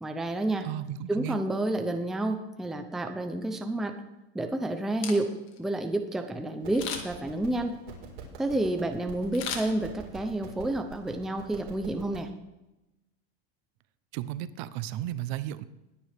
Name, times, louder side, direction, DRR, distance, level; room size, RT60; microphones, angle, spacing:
voice 1, 0.0-0.7 1.1-4.0 4.3-5.3 5.6-7.7 8.4-12.3, right 1 dB, ahead, 6 dB, 0.5 m, -30 dB
voice 2, 0.6-1.4 14.1-15.6, right 12 dB, 45° right, 15 dB, 0.6 m, -34 dB
Camera, 4.8-5.6 6.7-7.3 9.3-10.3 10.7-10.8, left 7 dB, 40° left, 1.9 m, -37 dB
sound 1, 6.6-12.2, right 5 dB, 70° right, 4.5 m, -46 dB
20.5 x 9.2 x 3.4 m, 0.96 s
supercardioid pair, 160°, 31 cm